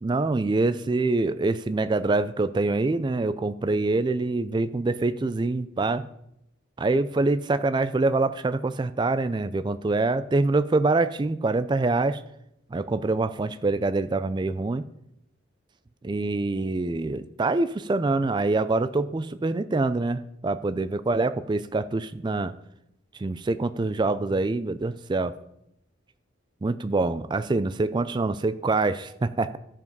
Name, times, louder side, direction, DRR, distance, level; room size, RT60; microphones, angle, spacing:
voice 1, 0.0-6.0 6.8-12.2 12.7-14.8 16.0-22.5 23.2-25.3 26.6-29.6, right 3 dB, 20° right, 12 dB, 0.3 m, -25 dB
12.0 x 4.9 x 5.3 m, 0.81 s
head